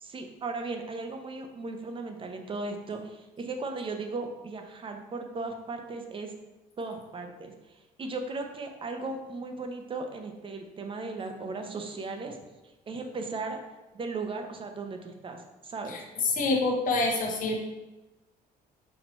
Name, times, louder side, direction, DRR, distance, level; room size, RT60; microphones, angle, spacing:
voice 1, 0.0-6.4 6.8-7.5 8.0-12.4 12.9-13.6 13.9-16.0, right 3 dB, 30° right, 4 dB, 0.6 m, -36 dB
voice 2, 16.4-17.6, left 2 dB, 55° left, 1 dB, 0.9 m, -26 dB
4.3 x 2.8 x 4.3 m, 1.1 s
cardioid pair, 110°, 17 cm